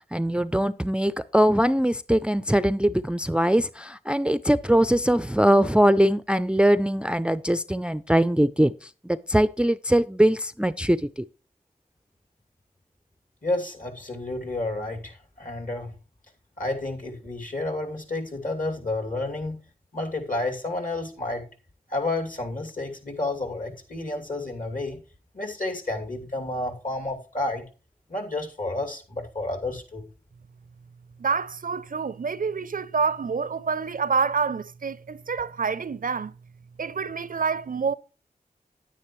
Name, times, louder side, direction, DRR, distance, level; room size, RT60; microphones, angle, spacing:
voice 1, 0.0-11.2, equal, 5° right, 0.4 m, -22 dB
voice 2, 13.4-15.9 16.6-19.6 19.9-21.4 21.9-25.0 25.3-27.6 28.1-30.0, left 2 dB, 60° left, 2.7 m, -30 dB
voice 3, 31.2-36.3 36.8-37.9, right 5 dB, 60° right, 0.5 m, -27 dB
9.7 x 9.5 x 3.1 m
cardioid pair, 45°, 16 cm